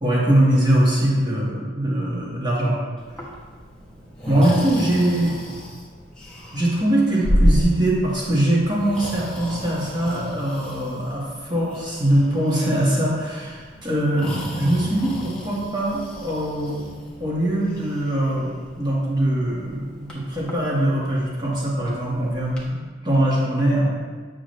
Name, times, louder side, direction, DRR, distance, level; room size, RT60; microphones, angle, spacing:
voice 1, 0.0-2.8 4.3-5.4 6.5-16.8 17.2-24.0, right 1 dB, 25° right, -5 dB, 1.9 m, -22 dB
Breathing, 3.0-22.7, equal, 5° left, 1.3 m, -31 dB
8.7 x 6.2 x 3.3 m, 1.5 s
head